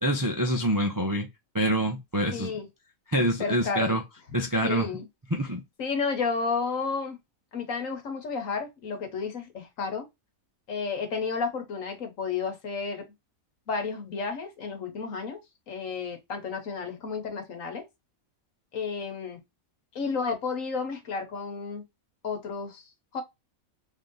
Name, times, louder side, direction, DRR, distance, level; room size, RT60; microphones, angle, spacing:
voice 1, 0.0-1.3 1.5-2.5 3.1-4.0 4.3-4.9 5.3-5.6, right 1 dB, 30° right, 0.4 m, -26 dB
voice 2, 2.3-2.7 3.4-4.0 4.6-5.1 5.8-7.2 7.5-10.1 10.7-13.0 13.7-15.4 15.7-17.8 18.7-19.4 19.9-21.8 22.2-22.8 23.1-23.2, left 5 dB, 70° left, 1.4 m, -32 dB
3.2 x 2.7 x 3.8 m
omnidirectional pair, 1.5 m